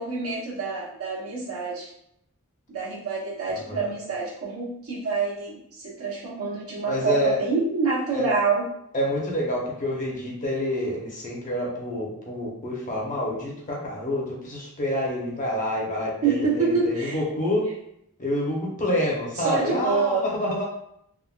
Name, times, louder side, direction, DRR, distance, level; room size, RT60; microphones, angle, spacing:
voice 1, 0.0-1.9 2.7-8.7 16.2-17.2 19.4-20.3, right 4 dB, 85° right, -6 dB, 1.0 m, -26 dB
voice 2, 6.9-7.4 8.1-8.3 8.9-17.7 18.2-20.6, left 1 dB, 40° left, -3 dB, 0.8 m, -27 dB
3.5 x 2.2 x 2.4 m, 0.74 s
head